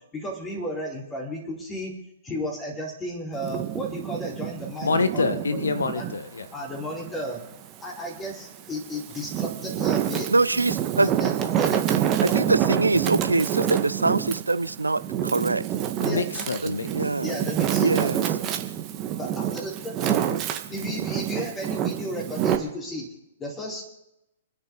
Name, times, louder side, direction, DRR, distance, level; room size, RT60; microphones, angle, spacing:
voice 1, 0.1-1.9 2.2-5.6 5.9-6.0 6.5-7.4 7.8-10.3 11.0-12.4 16.0-16.2 17.2-18.2 19.1-19.3 19.6-20.3 20.7-23.1 23.4-23.9, equal, 15° left, -3 dB, 4.3 m, -34 dB
Wind, 3.3-6.2 6.7-8.0 8.6-22.6, right 10 dB, 30° right, 1.6 m, -27 dB
voice 2, 4.8-6.5 16.0-16.9, left 4 dB, 70° left, 11 dB, 1.3 m, -26 dB
voice 3, 10.3-11.1 12.2-15.6 16.6-17.4 17.8-18.2, right 3 dB, 85° right, 16 dB, 0.7 m, -24 dB
28.5 x 10.0 x 4.0 m, 0.85 s
figure-of-eight pair, 115°, 0 cm